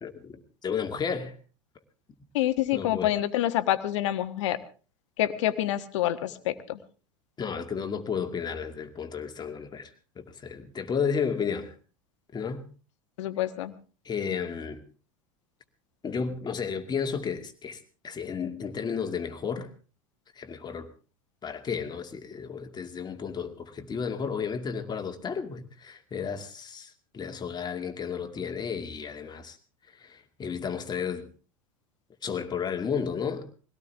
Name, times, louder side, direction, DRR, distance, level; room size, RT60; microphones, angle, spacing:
voice 1, 0.0-1.4 2.7-3.1 7.4-9.9 10.2-11.8 12.3-12.7 14.0-14.8 16.0-19.7 20.4-20.9 21.4-29.6 29.9-31.3 32.2-33.4, left 6 dB, 25° left, 2.3 m, -33 dB
voice 2, 2.3-4.6 5.2-6.8 13.2-13.8, left 13 dB, 65° left, 1.4 m, -27 dB
22.5 x 17.5 x 3.5 m
figure-of-eight pair, 80°, 17 cm